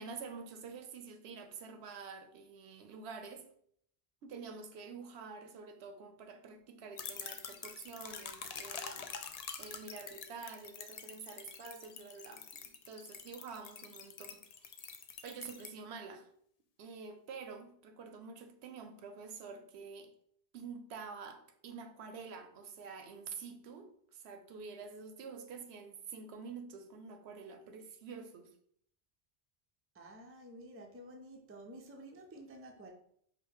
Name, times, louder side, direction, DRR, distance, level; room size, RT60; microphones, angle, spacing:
voice 1, 0.0-3.5 4.2-14.9 15.2-16.3 16.8-20.1 20.5-28.5, right 5 dB, 75° right, 0.9 m, -48 dB
sound 1, 7.0-15.7, left 6 dB, 55° left, 0.4 m, -46 dB
voice 2, 29.9-32.9, right 1 dB, 20° right, 0.4 m, -51 dB
4.8 x 2.2 x 4.7 m
omnidirectional pair, 1.1 m